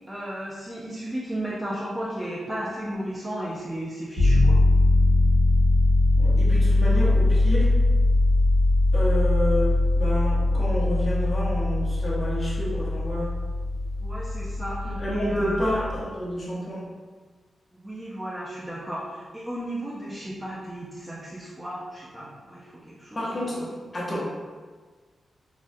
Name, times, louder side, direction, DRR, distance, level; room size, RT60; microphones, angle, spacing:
voice 1, 0.1-4.6 14.0-15.7 17.7-23.7, right 1 dB, 10° right, -6 dB, 0.3 m, -34 dB
sound 1, 4.2-16.0, left 2 dB, 25° right, 1.0 m, -21 dB
voice 2, 6.2-7.7 8.9-13.3 14.8-16.9 23.2-24.3, equal, 25° left, -6 dB, 0.6 m, -29 dB
3.5 x 2.1 x 2.5 m, 1.5 s
wide cardioid pair, 175°, 0 cm